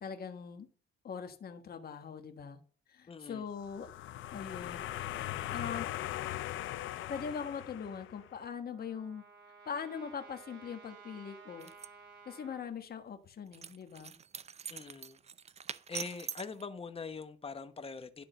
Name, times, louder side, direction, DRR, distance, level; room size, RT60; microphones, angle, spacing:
voice 1, 0.0-0.7 1.0-2.6 2.9-3.9 4.3-5.2 5.5-5.9 7.1-9.2 9.6-11.7 12.2-14.2, left 6 dB, 50° left, 7 dB, 1.4 m, -41 dB
voice 2, 3.1-3.4 14.7-15.2 15.9-18.3, left 5 dB, 30° left, 10 dB, 1.0 m, -43 dB
sound 1, 3.6-8.4, left 13 dB, 80° left, 0.5 m, -40 dB
Trumpet, 8.1-12.6, right 5 dB, 70° right, 2.7 m, -55 dB
sound 2, 11.6-11.9 13.5-16.6, right 7 dB, 35° right, 0.5 m, -44 dB
11.5 x 3.8 x 6.7 m, 0.42 s
cardioid pair, 90°, 20 cm